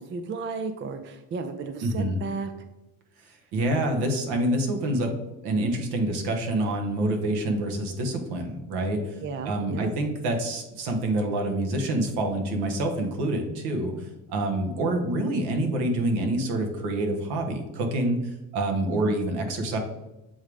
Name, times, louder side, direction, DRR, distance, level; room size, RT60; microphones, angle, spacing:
voice 1, 0.0-2.5 9.2-9.9 18.9-19.1, right 4 dB, 25° right, 8 dB, 0.5 m, -34 dB
voice 2, 1.8-2.2 3.5-5.1 5.4-9.2 9.4-19.8, right 1 dB, 65° right, 3 dB, 1.3 m, -27 dB
7.8 x 3.6 x 3.5 m, 1.0 s
hypercardioid pair, 65°, 44 cm